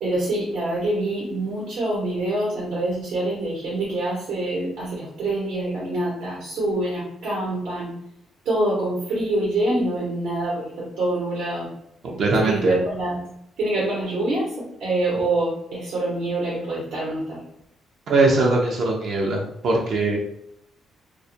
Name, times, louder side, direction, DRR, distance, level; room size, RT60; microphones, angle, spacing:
voice 1, 0.0-7.9 8.4-11.7 12.3-13.2 13.6-17.4, right 1 dB, 85° right, -6 dB, 0.9 m, -25 dB
voice 2, 12.0-12.7 18.1-20.2, right 2 dB, 65° right, -2 dB, 0.4 m, -21 dB
2.3 x 2.1 x 2.6 m, 0.75 s
cardioid pair, 90°, 0 cm